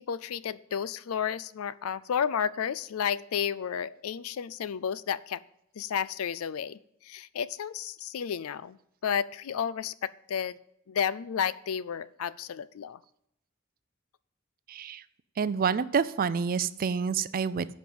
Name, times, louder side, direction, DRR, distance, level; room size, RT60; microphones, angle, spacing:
voice 1, 0.0-5.4 5.8-8.8 9.0-10.6 10.9-13.0, left 8 dB, 75° left, 19 dB, 0.4 m, -32 dB
voice 2, 14.7-15.0 15.4-17.7, right 6 dB, 40° right, 15 dB, 0.4 m, -28 dB
9.9 x 5.3 x 7.7 m, 0.77 s
head